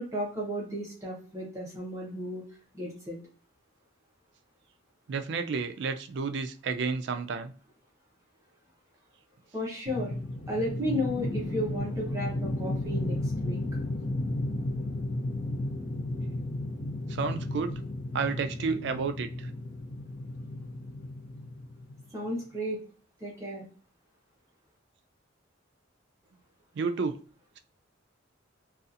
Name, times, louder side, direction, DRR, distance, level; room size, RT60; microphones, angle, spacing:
voice 1, 0.0-2.4 2.7-3.2 9.5-10.2 10.5-13.6 22.1-22.8 23.2-23.6, equal, 15° right, 0.7 m, -33 dB
voice 2, 5.1-7.5 17.1-17.8 18.1-19.5 26.8-27.2, right 5 dB, 60° right, 0.3 m, -31 dB
sound 1, 9.9-22.1, left 1 dB, 60° left, 0.6 m, -34 dB
2.7 x 2.3 x 2.5 m
head